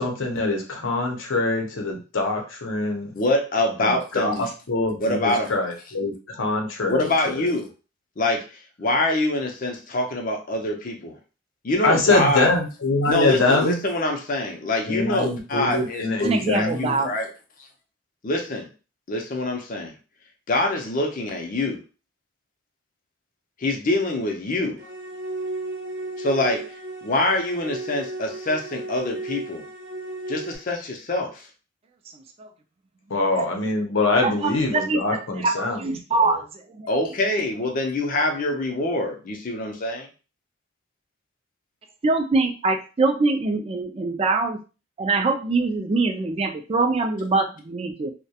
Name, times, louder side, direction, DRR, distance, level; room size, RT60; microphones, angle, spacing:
voice 1, 0.0-3.1 3.8-4.3 4.7-7.1 11.8-13.8 14.9-17.0 33.1-36.4, left 2 dB, 80° left, 2 dB, 0.7 m, -24 dB
voice 2, 3.1-4.5 5.0-5.5 6.9-7.7 8.2-8.4 8.8-11.2 11.6-12.5 13.1-17.3 18.2-18.7 19.1-19.9 20.5-21.8 23.6-24.8 26.2-26.6 27.0-29.6 30.3-31.5 36.9-40.1, left 2 dB, 45° left, 3 dB, 0.5 m, -25 dB
voice 3, 16.2-17.2 32.4-32.5 33.4-33.5 34.2-36.4 36.7-36.9 42.0-44.6 45.0-48.1, right 3 dB, 30° right, 4 dB, 0.3 m, -24 dB
sound 1, 24.8-30.6, right 2 dB, 80° right, 0.7 m, -34 dB
2.3 x 2.1 x 2.7 m, 0.33 s
head